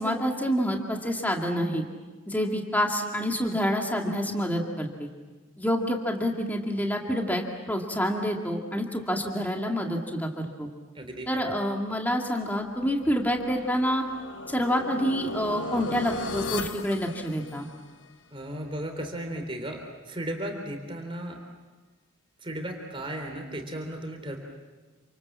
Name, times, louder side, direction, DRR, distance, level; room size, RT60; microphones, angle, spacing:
voice 1, 0.0-1.9 2.3-5.1 5.6-10.7 11.3-14.1 14.5-17.7, equal, 10° left, 1 dB, 2.1 m, -27 dB
voice 2, 10.9-11.6 18.3-19.8 20.1-21.4 22.4-24.4, right 1 dB, 25° right, 2 dB, 3.6 m, -35 dB
sound 1, 12.8-18.0, left 3 dB, 60° left, 1.0 m, -37 dB
29.0 x 27.0 x 7.4 m, 1.3 s
head